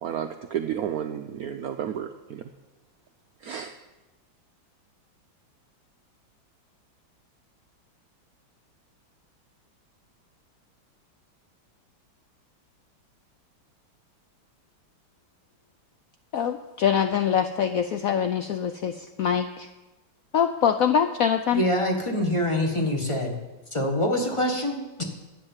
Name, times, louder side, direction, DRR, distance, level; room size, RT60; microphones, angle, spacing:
voice 1, 0.0-2.4 3.4-3.7, right 9 dB, 70° right, 7 dB, 0.9 m, -31 dB
voice 2, 16.3-19.7 20.3-21.6, left 8 dB, 85° left, 8 dB, 0.7 m, -24 dB
voice 3, 21.5-23.4 23.7-25.0, left 1 dB, 15° left, 2 dB, 1.5 m, -25 dB
11.0 x 9.5 x 7.4 m, 1.1 s
omnidirectional pair, 2.1 m